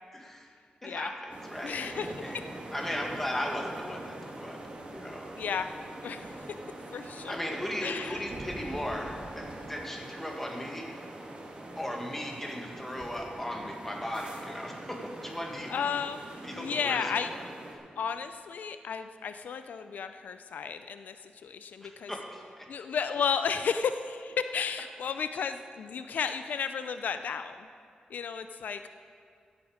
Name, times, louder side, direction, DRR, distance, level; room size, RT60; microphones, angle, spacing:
voice 1, 0.1-0.5 0.8-2.4 2.7-4.6 4.9-5.3 7.3-11.1 11.8-15.7 16.4-17.4 21.8-22.7, left 1 dB, 10° left, 0 dB, 1.7 m, -37 dB
sound 1, 1.3-17.7, right 1 dB, 40° right, 1.7 m, -43 dB
voice 2, 1.6-2.1 5.4-5.7 6.0-6.3 6.9-7.4 7.8-8.2 15.7-17.3 18.0-22.1 22.7-27.7 28.1-28.9, left 6 dB, 80° left, 10 dB, 0.4 m, -33 dB
16.0 x 8.2 x 5.0 m, 2.3 s
wide cardioid pair, 120°, 3 cm